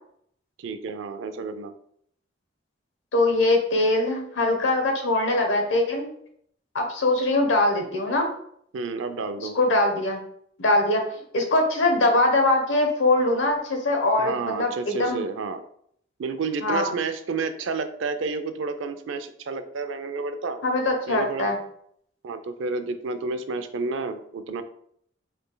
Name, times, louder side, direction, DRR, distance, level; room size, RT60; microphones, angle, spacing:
voice 1, 0.6-1.7 8.7-9.6 14.2-15.6 16.2-20.6 21.1-21.5 22.2-24.6, right 4 dB, 85° right, 10 dB, 0.4 m, -30 dB
voice 2, 3.1-6.1 6.7-8.3 9.5-10.2 10.6-11.0 11.3-15.2 16.6-16.9 20.6-21.6, left 2 dB, 90° left, 3 dB, 0.9 m, -22 dB
5.0 x 3.3 x 2.2 m, 0.67 s
head